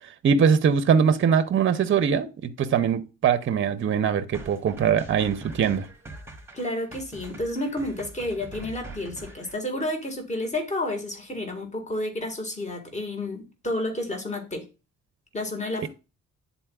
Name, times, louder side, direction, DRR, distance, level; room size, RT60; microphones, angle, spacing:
voice 1, 0.2-5.9 15.8-15.9, right 7 dB, 40° right, 0.6 m, -22 dB
sound 1, 4.3-9.5, right 2 dB, 10° right, 1.2 m, -43 dB
voice 2, 6.5-14.7 15.3-15.9, left 1 dB, 25° left, 1.7 m, -30 dB
10.0 x 4.1 x 2.3 m
cardioid pair, 90°, 30 cm